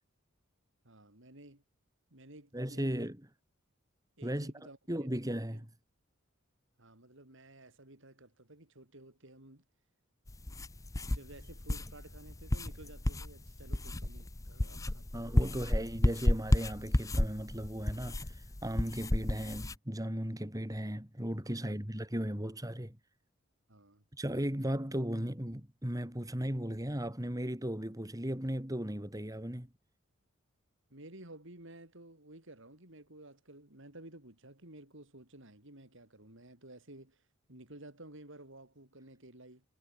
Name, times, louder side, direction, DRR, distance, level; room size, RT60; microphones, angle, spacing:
voice 1, 0.8-1.6 2.1-2.9 4.2-5.1 5.5-5.6 6.8-9.6 11.0-15.6 21.4-21.8 23.7-24.0 30.9-37.2 37.5-39.6, right 1 dB, 65° right, 5.4 m, -54 dB
voice 2, 2.5-3.2 4.2-4.5 4.9-5.7 15.1-23.0 24.1-29.7, equal, 15° right, 3.5 m, -36 dB
sound 1, 10.3-19.8, left 1 dB, 15° left, 0.6 m, -32 dB
head